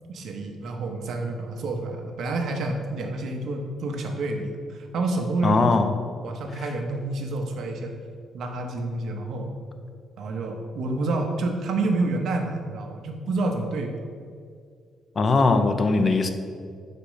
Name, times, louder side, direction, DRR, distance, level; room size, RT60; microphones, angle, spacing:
voice 1, 0.1-5.8 6.2-7.9 8.3-9.5 10.2-13.9, right 2 dB, 70° right, 3 dB, 0.8 m, -28 dB
voice 2, 5.4-5.9 15.2-16.3, left 3 dB, 40° left, 7 dB, 0.5 m, -20 dB
5.1 x 4.3 x 4.9 m, 2.2 s
cardioid pair, 90°, 0 cm